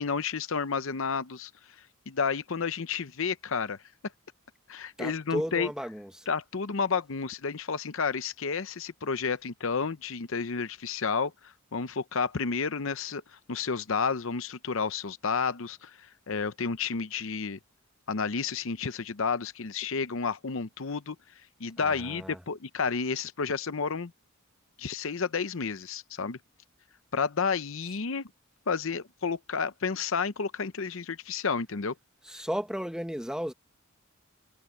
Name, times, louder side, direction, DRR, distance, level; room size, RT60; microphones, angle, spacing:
voice 1, 0.0-1.5 2.1-3.8 4.7-5.7 6.3-17.6 18.1-21.2 21.6-24.1 24.8-26.4 27.1-28.3 28.7-31.9, left 5 dB, 60° left, 0.7 m, -31 dB
voice 2, 5.0-6.3 21.8-22.4 32.2-33.5, equal, 5° right, 1.1 m, -34 dB
head